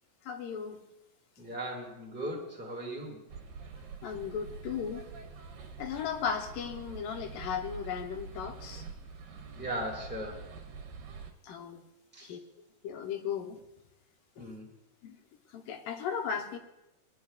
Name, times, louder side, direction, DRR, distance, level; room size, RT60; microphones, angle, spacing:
voice 1, 0.3-0.8 4.0-5.1 5.8-8.8 11.4-11.8 12.2-12.4 12.8-13.6 14.4-14.5 15.0-15.2 15.5-16.6, left 7 dB, 80° left, 4 dB, 2.6 m, -36 dB
voice 2, 1.4-3.2 9.5-10.5 12.1-12.3 14.4-14.7, right 1 dB, 10° right, -3 dB, 0.5 m, -38 dB
sound 1, 3.3-11.3, right 5 dB, 85° right, 2.7 m, -45 dB
20.5 x 10.5 x 2.4 m, 0.91 s
omnidirectional pair, 4.0 m